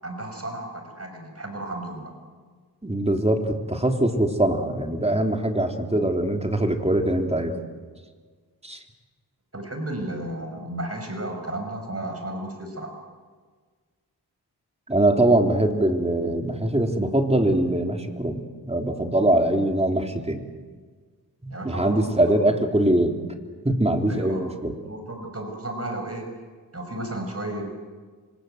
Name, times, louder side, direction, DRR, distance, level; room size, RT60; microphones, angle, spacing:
voice 1, 0.0-2.1 9.5-12.9 21.5-22.4 24.1-24.4 24.8-26.3 26.7-27.7, right 1 dB, 35° right, 4 dB, 6.5 m, -33 dB
voice 2, 2.8-7.6 8.6-8.8 14.9-20.5 21.4-23.2 23.6-24.7, right 1 dB, 15° right, 4 dB, 3.6 m, -22 dB
27.0 x 25.0 x 8.2 m, 1.5 s
cardioid pair, 60°, 40 cm